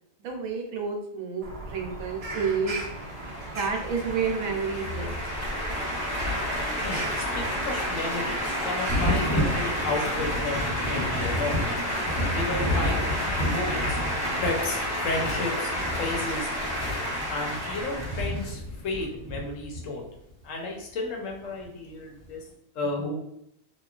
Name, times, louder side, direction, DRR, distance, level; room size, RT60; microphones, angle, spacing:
voice 1, 0.2-2.9 3.4-5.2, right 5 dB, 80° right, 2 dB, 1.0 m, -30 dB
Bird vocalization bird call bird song, 1.4-11.2, right 2 dB, 55° right, 0.4 m, -39 dB
sound 1, 2.4-19.0, equal, 10° left, 1.1 m, -31 dB
voice 2, 6.8-11.6 12.3-13.1 13.4-14.0 14.4-15.7 16.0-16.5 17.3-20.0 20.4-22.4 22.7-23.1, left 2 dB, 70° left, 0 dB, 1.0 m, -32 dB
Thunder, 8.9-20.3 21.6-21.7 22.2-22.3, equal, 10° right, 1.0 m, -31 dB
3.0 x 2.3 x 2.4 m, 0.77 s
omnidirectional pair, 1.4 m